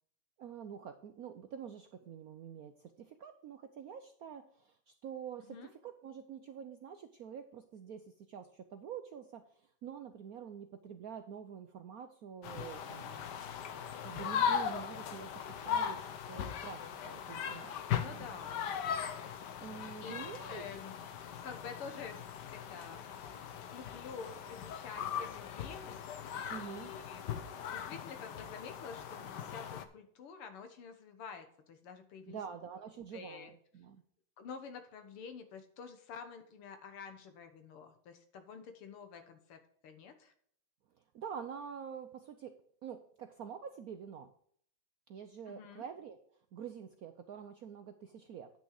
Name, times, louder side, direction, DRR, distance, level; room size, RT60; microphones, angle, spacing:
voice 1, 0.4-5.6 5.8-13.3 13.7-15.3 15.6-17.7 18.0-18.6 19.6-20.6 26.5-26.9 32.3-34.0 41.0-44.3 45.1-46.2 46.5-48.5, right 7 dB, 85° right, 7 dB, 0.8 m, -47 dB
sound 1, 12.4-29.8, left 8 dB, 60° left, 1.2 m, -39 dB
voice 2, 18.0-18.6 20.0-20.1 20.5-20.9 21.4-22.2 22.5-23.4 23.7-26.0 26.5-27.3 27.7-32.4 33.1-33.5 34.4-40.3 45.5-45.8, left 5 dB, 80° left, 8 dB, 2.2 m, -48 dB
9.7 x 6.2 x 4.8 m, 0.62 s
omnidirectional pair, 2.4 m